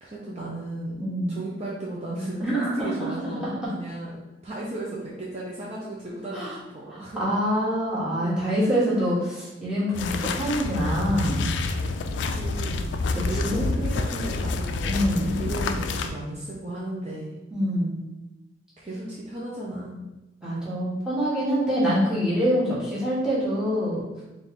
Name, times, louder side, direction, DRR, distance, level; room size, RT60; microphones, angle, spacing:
voice 1, 0.0-1.0 1.3-4.2 4.4-7.2 8.6-8.8 12.3-12.9 13.3-15.0 15.4-17.3 18.8-20.0, right 1 dB, 35° right, -6 dB, 0.6 m, -35 dB
voice 2, 1.0-1.4 2.4-3.1 3.4-3.5 6.3-6.5 6.9-11.5 13.1-13.7 14.9-15.4 17.5-18.0 20.4-24.0, equal, 5° right, -9 dB, 1.2 m, -25 dB
sound 1, 9.9-16.1, left 3 dB, 70° left, 0.3 m, -28 dB
4.1 x 2.4 x 3.5 m, 1.0 s
head